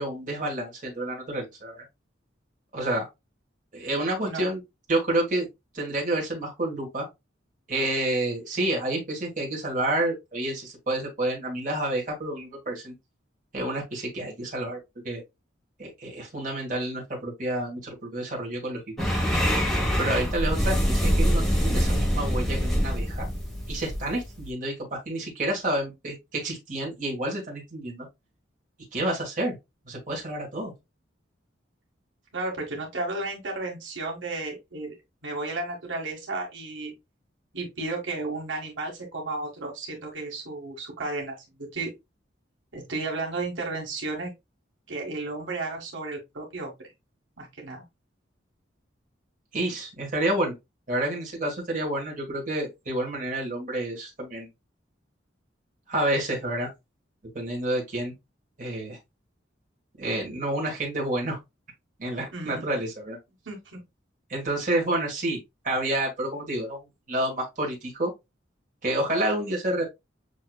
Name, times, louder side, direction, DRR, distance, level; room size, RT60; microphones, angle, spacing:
voice 1, 0.0-1.8 2.7-3.1 3.7-4.6 4.9-5.5 5.7-7.1 7.7-12.9 13.5-14.8 15.0-15.2 15.8-19.1 20.0-23.3 23.7-28.1 28.9-29.6 29.9-30.7 49.5-50.5 50.9-54.5 55.9-56.7 57.3-58.1 58.6-59.0 60.0-61.4 62.0-63.2 64.3-65.4 65.6-66.8 67.1-68.1 68.8-69.8, right 1 dB, 45° right, 1.4 m, -29 dB
sound 1, 19.0-24.5, equal, ahead, 0.9 m, -25 dB
voice 2, 32.3-35.0 35.2-36.9 37.5-41.9 42.7-44.3 44.9-46.7 47.4-47.8 62.3-62.6 63.4-63.8, right 2 dB, 85° right, 1.5 m, -33 dB
6.4 x 2.8 x 2.2 m
head